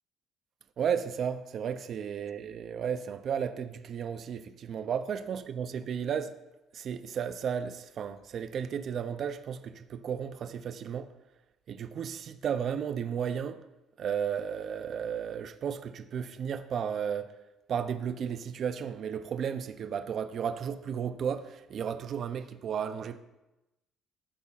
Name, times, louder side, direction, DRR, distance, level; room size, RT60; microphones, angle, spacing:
voice 1, 0.8-6.3 6.7-11.1 11.7-13.6 14.0-17.3 17.7-23.2, right 7 dB, 40° right, 0.4 m, -34 dB
12.0 x 5.5 x 2.4 m
cardioid pair, 160°, 0 cm